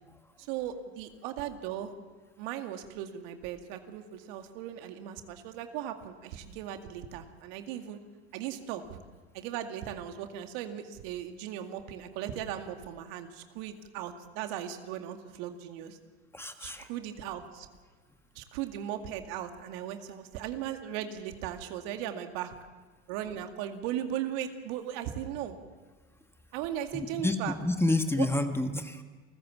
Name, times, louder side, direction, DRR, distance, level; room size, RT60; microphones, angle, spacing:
voice 1, 0.4-1.9 2.4-8.0 8.3-9.0 9.3-16.0 16.6-17.7 18.4-22.6 23.1-25.6 26.5-27.6 28.2-28.3, right 10 dB, 60° right, 6 dB, 2.2 m, -37 dB
voice 2, 16.3-16.9 26.9-29.0, left 2 dB, 5° left, 7 dB, 1.4 m, -29 dB
29.0 x 14.5 x 7.3 m, 1.3 s
hypercardioid pair, 90°, 34 cm